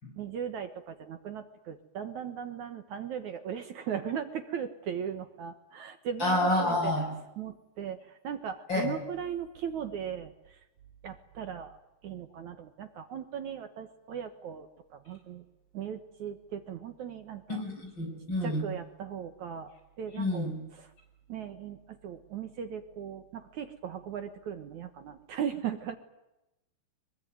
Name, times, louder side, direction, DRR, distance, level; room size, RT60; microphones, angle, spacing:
voice 1, 0.2-6.9 7.4-8.0 8.2-10.3 11.0-11.8 12.0-14.7 14.9-15.4 15.7-17.4 18.4-19.7 20.0-20.5 21.3-21.8 22.0-26.0, right 8 dB, 60° right, 8 dB, 2.2 m, -38 dB
voice 2, 6.2-7.1 8.7-9.0 17.5-18.7 20.1-20.5, left 1 dB, 25° left, 2 dB, 8.0 m, -29 dB
23.5 x 23.5 x 9.4 m, 0.94 s
omnidirectional pair, 4.8 m